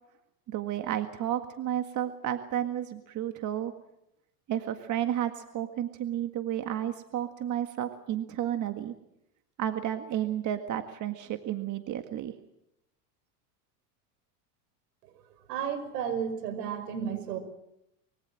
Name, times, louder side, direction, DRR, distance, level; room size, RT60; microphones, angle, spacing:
voice 1, 0.5-3.7 4.5-8.9 9.6-12.3, right 11 dB, 40° right, 7 dB, 1.8 m, -32 dB
voice 2, 15.5-17.4, right 8 dB, 80° right, 11 dB, 5.7 m, -32 dB
24.5 x 22.5 x 7.6 m, 0.82 s
supercardioid pair, 115°, 48 cm